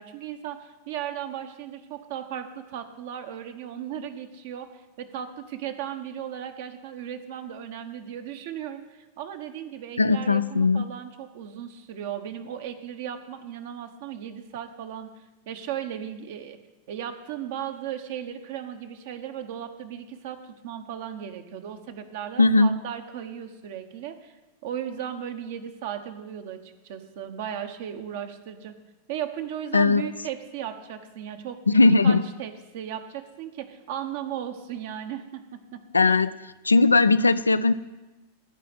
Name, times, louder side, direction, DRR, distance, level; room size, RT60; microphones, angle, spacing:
voice 1, 0.0-15.1 15.5-16.6 16.9-24.3 24.6-28.8 29.1-36.2, right 9 dB, 50° right, 7 dB, 1.2 m, -36 dB
voice 2, 10.0-10.8 22.4-22.7 29.7-30.0 31.7-32.2 35.9-36.3 36.6-37.7, left 3 dB, 80° left, 13 dB, 0.4 m, -18 dB
15.0 x 5.1 x 9.5 m, 1.1 s
figure-of-eight pair, 90°, 0 cm